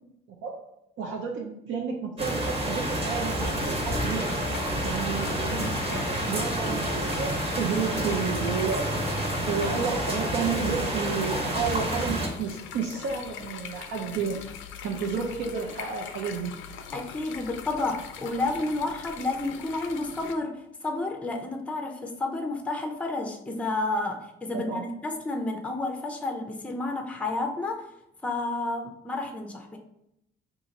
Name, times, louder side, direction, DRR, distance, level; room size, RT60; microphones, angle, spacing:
voice 1, 0.3-4.4 4.8-8.9 9.5-14.4 14.8-16.7 24.7-24.8, right 6 dB, 75° right, -1 dB, 0.5 m, -31 dB
sound 1, 2.2-12.3, right 1 dB, 30° right, 1.0 m, -29 dB
sound 2, 3.4-20.3, left 7 dB, 80° left, 0.4 m, -42 dB
voice 2, 16.9-27.9 28.2-29.8, left 2 dB, 5° left, 3 dB, 0.4 m, -31 dB
2.8 x 2.5 x 3.9 m, 0.80 s
cardioid pair, 90°, 20 cm